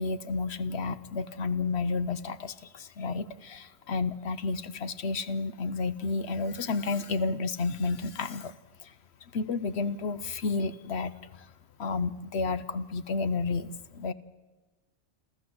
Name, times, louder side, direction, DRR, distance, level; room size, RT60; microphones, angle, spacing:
voice 1, 0.0-8.5 8.8-8.9 9.2-11.5 11.8-14.1, left 4 dB, 65° left, 14 dB, 1.1 m, -31 dB
29.0 x 13.0 x 7.8 m, 1.2 s
omnidirectional pair, 1.2 m